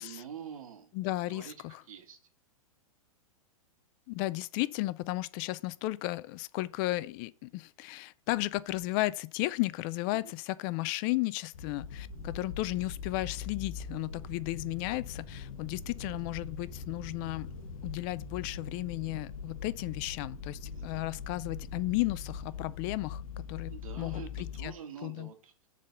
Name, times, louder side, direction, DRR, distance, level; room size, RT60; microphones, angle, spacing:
voice 1, 0.0-0.9 1.3-1.5 1.9-2.2 20.7-21.0 23.7-25.5, right 8 dB, 70° right, 1.7 m, -46 dB
voice 2, 0.9-1.8 4.1-17.5 17.8-24.7 25.0-25.3, left 19 dB, 35° left, 0.4 m, -34 dB
sound 1, 11.5-24.7, left 6 dB, 70° left, 1.1 m, -42 dB
sound 2, 12.1-22.5, right 6 dB, 20° right, 0.9 m, -52 dB
7.3 x 3.8 x 6.6 m
hypercardioid pair, 115°, 18 cm